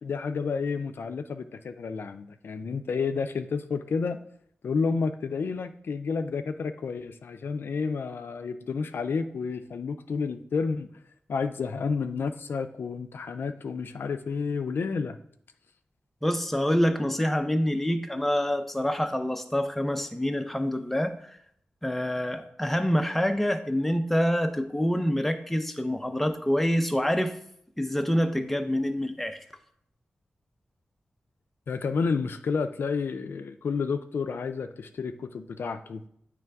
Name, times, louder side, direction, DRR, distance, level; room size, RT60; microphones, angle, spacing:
voice 1, 0.0-4.2 4.6-10.9 11.3-15.2 31.7-36.0, left 5 dB, 70° left, 9 dB, 0.4 m, -30 dB
voice 2, 16.2-21.3 21.8-27.3 27.8-29.4, equal, 5° left, 7 dB, 0.5 m, -26 dB
8.9 x 3.2 x 3.4 m, 0.68 s
wide cardioid pair, 145°, 4 cm